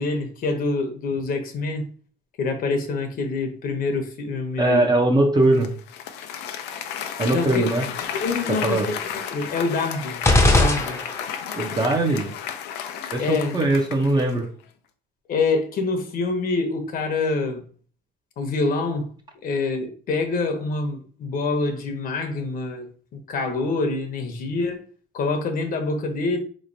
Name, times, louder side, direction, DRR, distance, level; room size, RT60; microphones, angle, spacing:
voice 1, 0.0-1.9 2.4-4.9 7.3-7.6 8.1-10.2 10.6-11.0 13.2-13.6 15.3-17.6 18.4-19.1 19.4-24.8 25.1-26.4, left 3 dB, 55° left, 0.9 m, -26 dB
voice 2, 4.6-5.7 7.2-7.8 8.5-8.9 11.5-12.3 13.1-14.5, right 2 dB, 25° right, 0.7 m, -21 dB
Applause, 5.5-14.4, left 8 dB, 85° left, 0.5 m, -33 dB
sound 1, 10.2-11.5, left 2 dB, 15° left, 0.7 m, -19 dB
4.1 x 3.1 x 2.6 m
cardioid pair, 110°, 17 cm